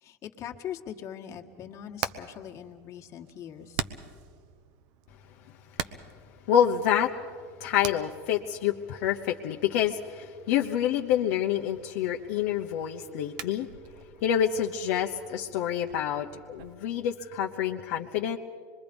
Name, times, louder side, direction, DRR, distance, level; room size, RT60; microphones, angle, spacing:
voice 1, 0.0-3.8, left 10 dB, 40° left, 2 dB, 1.7 m, -41 dB
Hammer, 1.5-16.7, right 9 dB, 60° right, 1.0 m, -43 dB
voice 2, 6.5-7.1 7.6-13.7 14.2-18.4, left 10 dB, 70° left, 1 dB, 0.9 m, -27 dB
25.0 x 22.5 x 5.3 m, 2.1 s
supercardioid pair, 115°, 8 cm